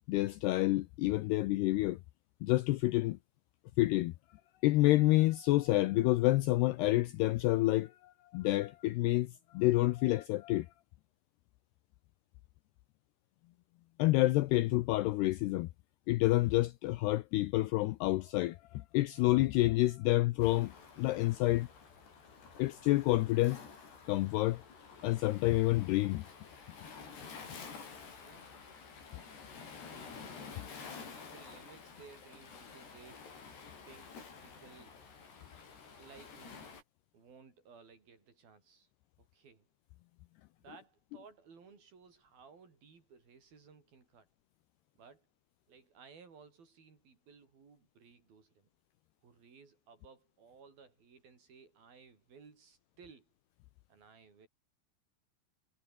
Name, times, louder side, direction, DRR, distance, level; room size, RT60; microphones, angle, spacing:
voice 1, 0.1-2.0 2.4-3.2 3.8-4.1 4.6-10.7 14.0-15.7 16.1-20.7 21.0-21.7 22.6-23.6 24.1-24.6 25.0-26.2, left 18 dB, 85° left, 2.4 m, -28 dB
Waves surf, 20.4-36.8, left 5 dB, 60° left, 8.1 m, -51 dB
voice 2, 28.2-28.5 29.7-30.6 31.0-33.5 33.8-35.0 36.0-36.6 37.1-38.9 39.2-39.7 40.6-44.3 45.0-45.3 45.7-48.7 49.2-53.3 53.9-54.5, right 5 dB, 50° right, 6.4 m, -58 dB
omnidirectional pair, 5.5 m